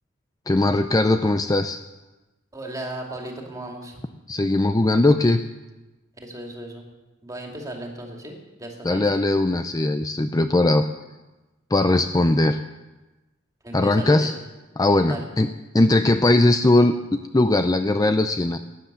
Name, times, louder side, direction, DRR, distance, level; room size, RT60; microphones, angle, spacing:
voice 1, 0.5-1.8 4.3-5.4 8.8-10.8 11.7-12.6 13.7-14.3 14.8-15.5 15.7-18.6, left 2 dB, 20° left, 8 dB, 0.5 m, -19 dB
voice 2, 2.5-4.0 6.2-6.8 7.2-9.2 12.2-12.3 13.6-14.3 15.1-15.3, right 1 dB, 15° right, 1 dB, 2.5 m, -36 dB
18.0 x 10.5 x 6.9 m, 1.1 s
head